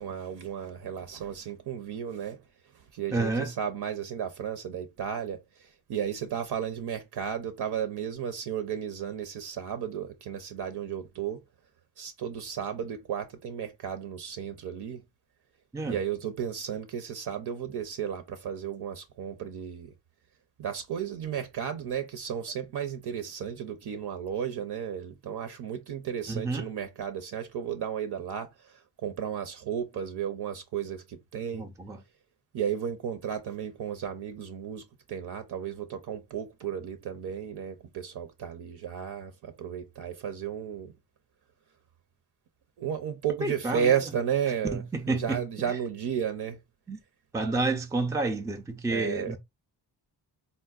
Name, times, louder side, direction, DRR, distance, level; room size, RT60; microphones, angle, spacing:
voice 1, 0.0-2.4 3.0-5.4 5.9-11.4 12.0-15.0 15.9-19.9 20.6-28.5 29.0-31.0 31.3-31.6 32.5-34.8 35.1-40.9 42.8-44.8 45.1-46.6 48.9-49.4, right 8 dB, 70° right, 0.5 m, -33 dB
voice 2, 3.1-3.5 15.7-16.0 26.3-26.7 31.5-32.0 43.4-43.9 44.7-45.8 46.9-47.0 47.3-49.4, right 3 dB, 10° right, 0.3 m, -30 dB
3.7 x 2.1 x 2.3 m
cardioid pair, 75°, 41 cm